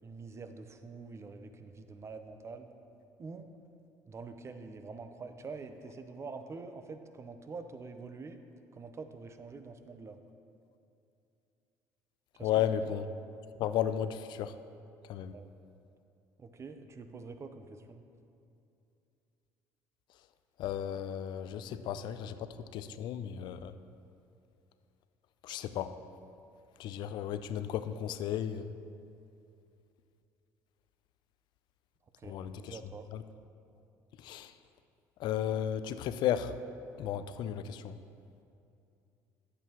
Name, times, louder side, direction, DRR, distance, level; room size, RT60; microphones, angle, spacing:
voice 1, 0.0-2.7 3.2-3.5 4.1-8.4 8.7-10.2 12.4-12.7 15.3-15.5 16.4-18.0 32.2-33.1, right 4 dB, 35° right, 8 dB, 0.7 m, -46 dB
voice 2, 12.4-13.1 13.6-14.5 15.1-15.3 20.6-22.4 22.7-23.7 25.4-26.0 26.8-28.7 32.2-32.8 33.1-33.2 34.2-34.5 35.2-36.5 37.0-37.9, left 10 dB, 65° left, 12 dB, 0.4 m, -34 dB
9.2 x 8.1 x 2.9 m, 2.6 s
supercardioid pair, 70°, 8 cm